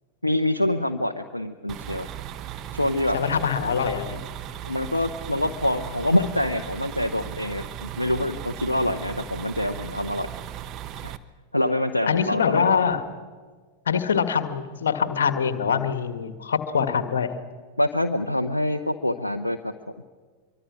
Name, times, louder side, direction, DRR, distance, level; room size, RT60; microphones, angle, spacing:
voice 1, 0.2-2.1 2.7-3.2 4.6-10.3 11.0-11.1 11.5-12.8 17.8-19.7, left 1 dB, 85° left, 6 dB, 0.8 m, -25 dB
sound 1, 1.7-11.2, right 10 dB, 35° right, 1.0 m, -37 dB
voice 2, 3.1-4.2 12.1-13.0 13.9-17.3, left 7 dB, 65° left, 10 dB, 1.8 m, -24 dB
25.0 x 24.0 x 6.2 m, 1.5 s
figure-of-eight pair, 90°, 0 cm